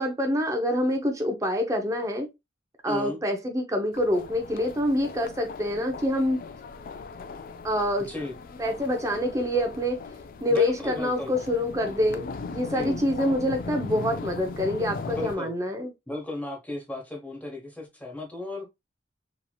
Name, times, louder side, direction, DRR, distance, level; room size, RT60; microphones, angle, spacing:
voice 1, 0.0-2.3 2.8-6.4 7.6-8.1 8.6-10.0 10.4-15.9, left 1 dB, 20° right, 0.7 m, -26 dB
voice 2, 2.9-3.2 8.1-8.3 10.5-11.3 12.6-13.0 15.1-15.5 16.1-18.7, left 2 dB, 10° left, 0.9 m, -35 dB
sound 1, 3.9-15.4, left 4 dB, 50° left, 0.4 m, -39 dB
3.0 x 2.8 x 2.3 m
head